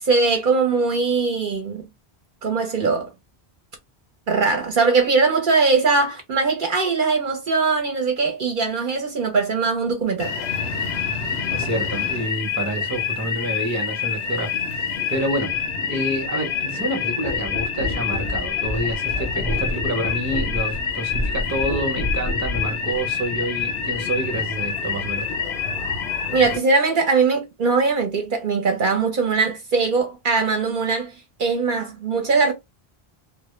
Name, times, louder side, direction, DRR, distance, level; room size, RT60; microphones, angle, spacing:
voice 1, 0.0-1.9 2.4-3.1 4.3-10.3 26.3-31.1 31.4-32.5, right 4 dB, 60° right, 0.7 m, -21 dB
sound 1, 10.2-26.6, left 6 dB, 80° left, 0.8 m, -27 dB
voice 2, 11.5-15.5 15.9-25.3, right 1 dB, 20° right, 0.6 m, -28 dB
sound 2, 17.2-22.8 23.7-23.8, left 1 dB, 40° left, 0.4 m, -29 dB
2.0 x 2.0 x 2.9 m
omnidirectional pair, 1.1 m